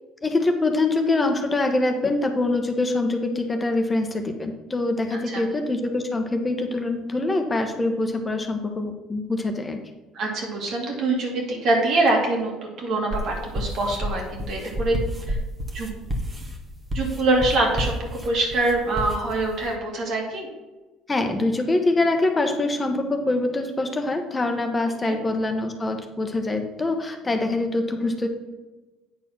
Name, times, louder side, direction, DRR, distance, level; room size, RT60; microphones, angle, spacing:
voice 1, 0.2-9.8 21.1-28.3, left 2 dB, 25° left, 5 dB, 1.1 m, -24 dB
voice 2, 5.1-5.4 10.1-15.0 15.3-15.4 15.7-16.0 16.9-20.5 25.0-25.2, right 2 dB, 60° right, 0 dB, 2.5 m, -24 dB
sound 1, 13.1-19.7, equal, 25° right, 1.6 m, -31 dB
8.8 x 4.2 x 5.9 m, 1.2 s
supercardioid pair, 75°, 0 cm